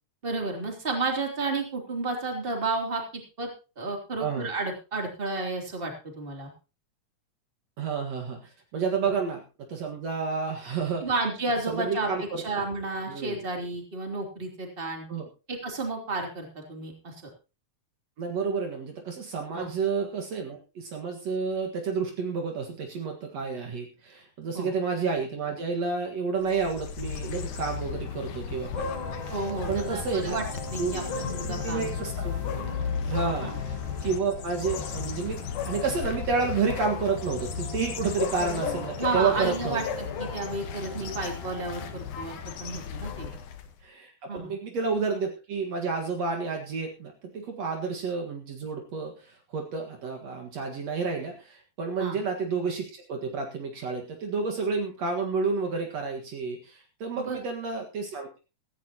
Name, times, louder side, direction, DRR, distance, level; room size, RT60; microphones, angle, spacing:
voice 1, 0.2-3.0 3.4-3.5 3.8-6.5 9.0-9.1 11.0-15.1 15.5-17.2 19.5-19.7 24.5-24.7 29.3-30.4 30.7-31.9 33.4-33.6 39.0-39.8 40.2-43.3 44.3-44.5 52.0-52.2 57.2-57.4, right 3 dB, 20° right, 2 dB, 3.1 m, -32 dB
voice 2, 7.8-9.4 9.7-11.1 11.7-12.6 13.1-13.4 15.1-15.2 18.2-28.9 29.7-30.4 30.8-31.0 31.4-32.7 33.1-33.8 34.0-39.8 41.0-41.1 43.8-58.4, right 5 dB, 60° right, 3 dB, 2.8 m, -30 dB
sound 1, 26.4-43.7, left 7 dB, 85° left, 2.8 m, -34 dB
sound 2, 28.7-41.9, right 2 dB, 80° right, 6.1 m, -43 dB
17.0 x 15.0 x 3.0 m, 0.31 s
omnidirectional pair, 3.4 m